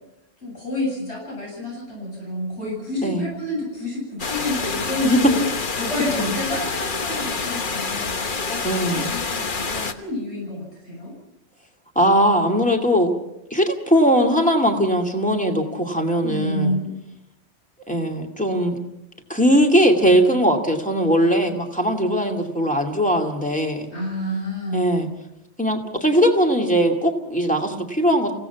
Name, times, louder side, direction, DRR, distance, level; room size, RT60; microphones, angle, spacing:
voice 1, 0.4-5.4 5.8-8.2 8.4-11.1 16.2-16.9 23.9-24.9, left 1 dB, 65° left, -3 dB, 8.2 m, -29 dB
sound 1, 4.2-9.9, left 4 dB, 45° left, 1.2 m, -27 dB
voice 2, 8.6-9.1 12.0-13.1 13.5-16.8 17.9-18.8 19.3-23.9 24.7-25.1 25.6-28.3, equal, 5° left, 2 dB, 2.5 m, -20 dB
28.0 x 17.0 x 5.9 m, 0.86 s
omnidirectional pair, 1.2 m